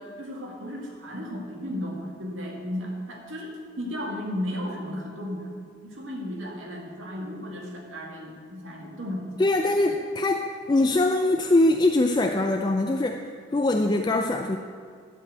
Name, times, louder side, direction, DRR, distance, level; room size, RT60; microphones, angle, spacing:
voice 1, 0.0-5.5 5.8-9.3, left 1 dB, 85° right, -1 dB, 2.1 m, -34 dB
voice 2, 9.4-14.6, left 2 dB, 20° left, 4 dB, 0.3 m, -23 dB
11.5 x 5.2 x 8.1 m, 2.1 s
head